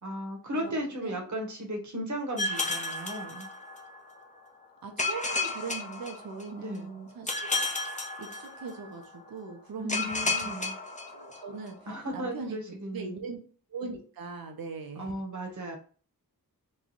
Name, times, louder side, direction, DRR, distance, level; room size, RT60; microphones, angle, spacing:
voice 1, 0.0-3.5 6.6-6.9 9.8-10.7 11.9-13.1 15.0-15.8, equal, 50° right, 2 dB, 1.0 m, -35 dB
voice 2, 0.5-1.3 4.8-7.3 8.2-10.7 11.1-12.6 12.9-13.4 13.7-15.1, right 4 dB, 70° right, 3 dB, 0.7 m, -40 dB
sound 1, 2.4-4.0 5.0-6.7 7.3-8.9 9.9-11.6, left 3 dB, 20° left, 0.6 m, -32 dB
3.0 x 2.3 x 3.9 m, 0.41 s
wide cardioid pair, 95°, 36 cm